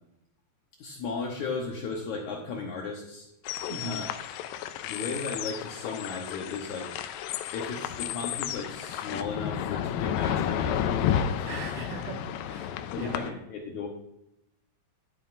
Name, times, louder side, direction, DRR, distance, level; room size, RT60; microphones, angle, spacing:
voice 1, 0.8-3.3 3.8-4.1 4.8-6.9 7.5-11.5 12.9-13.9, left 4 dB, 70° left, 0 dB, 2.1 m, -35 dB
sound 1, 3.5-13.3, left 9 dB, 85° left, 2.4 m, -32 dB
voice 2, 3.7-4.0 11.4-13.2, right 3 dB, 75° right, 2 dB, 1.1 m, -39 dB
11.5 x 9.0 x 2.5 m, 0.83 s
omnidirectional pair, 4.1 m